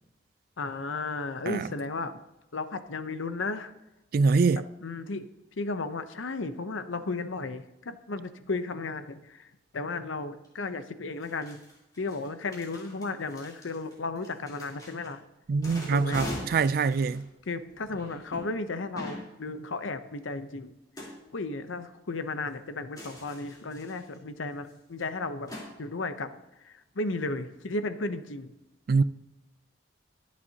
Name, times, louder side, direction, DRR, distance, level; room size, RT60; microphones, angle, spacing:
voice 1, 0.6-2.2 2.5-3.7 4.8-5.3 5.6-11.6 12.0-15.3 15.9-16.2 17.5-20.7 21.3-28.5, left 3 dB, 90° left, 0.8 m, -34 dB
voice 2, 4.1-4.6 15.5-17.3 28.9-29.0, right 4 dB, 50° right, 0.3 m, -24 dB
sound 1, 10.4-10.5 11.2-15.1 15.5-18.4 19.0-19.3 21.0-21.1 22.9-24.2 24.7-24.8 25.0-25.1 25.5-25.7, left 1 dB, 20° left, 3.4 m, -42 dB
22.0 x 7.4 x 2.9 m
head